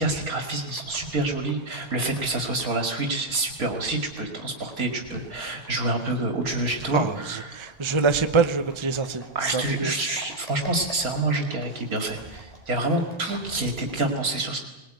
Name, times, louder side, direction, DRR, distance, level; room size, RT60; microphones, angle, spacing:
voice 1, 0.0-7.7 9.3-14.6, right 2 dB, 75° right, 3 dB, 2.9 m, -27 dB
Livestock farm animals working animals, 0.6-13.9, right 1 dB, 25° left, 4.3 m, -49 dB
voice 2, 6.9-9.9, right 4 dB, 25° right, 8 dB, 0.9 m, -25 dB
21.0 x 20.5 x 9.2 m, 1.0 s
omnidirectional pair, 1.5 m